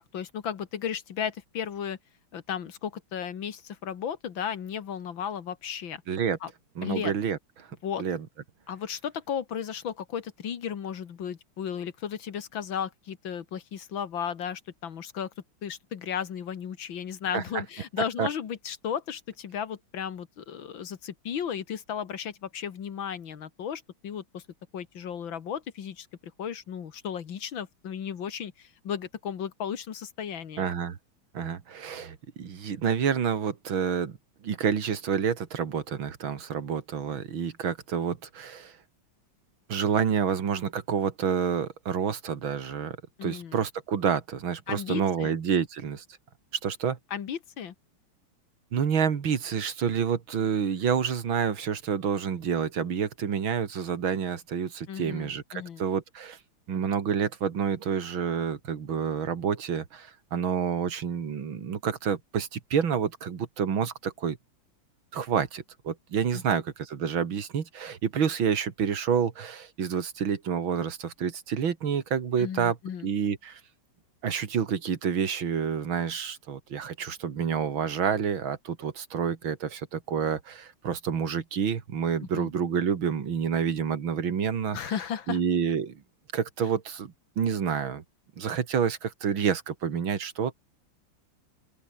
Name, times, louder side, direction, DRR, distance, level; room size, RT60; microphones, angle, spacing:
voice 1, 0.0-2.0 2.3-6.0 6.4-6.5 6.8-7.1 7.8-8.0 8.7-15.3 15.6-24.4 24.7-26.1 26.4-30.6 43.2-43.6 44.7-45.4 47.1-47.7 54.9-55.8 66.5-66.6 72.4-73.1 82.3-82.5 84.7-85.4, left 8 dB, 75° left, 2.3 m, -35 dB
voice 2, 6.1-6.4 6.8-7.4 8.0-8.3 17.3-17.4 18.2-18.3 30.6-31.0 31.3-34.1 34.4-38.7 39.7-43.0 43.2-46.0 46.6-47.0 48.7-56.4 56.7-64.4 65.1-72.8 73.0-73.6 74.2-84.8 85.3-86.0 86.3-88.0 88.4-90.5, right 7 dB, 75° right, 2.7 m, -28 dB
open air
omnidirectional pair, 2.2 m